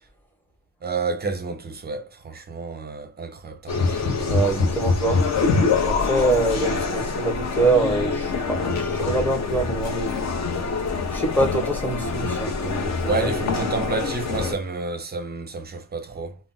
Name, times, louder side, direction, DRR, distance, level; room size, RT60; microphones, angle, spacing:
voice 1, 0.8-4.1 13.0-16.4, right 3 dB, 30° right, 0.5 m, -30 dB
sound 1, 3.7-14.5, left 4 dB, 50° left, 0.6 m, -25 dB
voice 2, 4.3-5.3 5.8-10.2 11.1-13.3, right 2 dB, 5° left, 0.7 m, -24 dB
2.5 x 2.0 x 3.7 m
wide cardioid pair, 160°, 35 cm